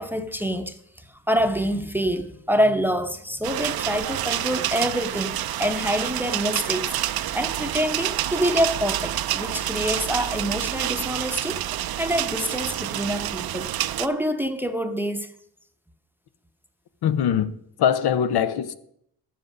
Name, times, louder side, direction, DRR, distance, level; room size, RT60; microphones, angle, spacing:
voice 1, 0.0-6.9 7.3-13.7 14.0-15.3, equal, 5° right, 0.8 m, -26 dB
sound 1, 3.4-14.1, right 12 dB, 75° right, 0.6 m, -28 dB
voice 2, 17.0-18.7, left 9 dB, 90° left, 0.8 m, -22 dB
12.5 x 7.6 x 6.4 m
cardioid pair, 115°, 37 cm